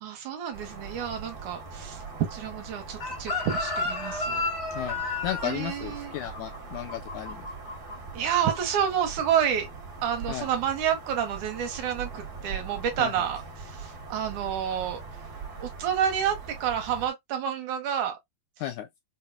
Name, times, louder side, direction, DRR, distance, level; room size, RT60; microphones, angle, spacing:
voice 1, 0.0-2.0 2.3-4.4 5.4-6.1 8.1-9.7 10.0-15.0 15.6-18.2, right 9 dB, 75° right, 2.1 m, -29 dB
sound 1, 0.5-17.1, right 4 dB, 50° right, 1.2 m, -41 dB
Chicken rooster, 3.0-7.9 8.2-8.6, left 3 dB, 65° left, 0.8 m, -32 dB
voice 2, 4.7-7.4 10.3-10.5 13.0-13.1 18.6-18.9, left 12 dB, 80° left, 1.7 m, -34 dB
5.5 x 2.1 x 2.2 m
omnidirectional pair, 3.8 m